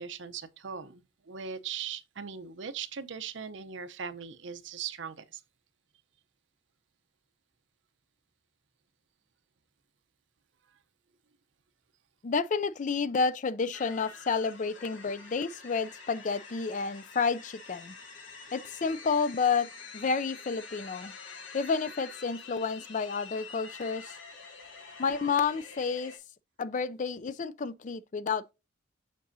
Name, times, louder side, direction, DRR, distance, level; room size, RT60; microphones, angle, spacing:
voice 1, 0.0-5.4, right 7 dB, 70° right, 0.7 m, -39 dB
voice 2, 12.2-17.9 18.5-19.7 19.9-21.1 21.5-24.2 25.0-26.1 26.6-28.5, left 5 dB, 40° left, 0.4 m, -30 dB
sound 1, 13.7-26.2, left 5 dB, 85° left, 2.0 m, -47 dB
7.4 x 6.0 x 2.6 m
head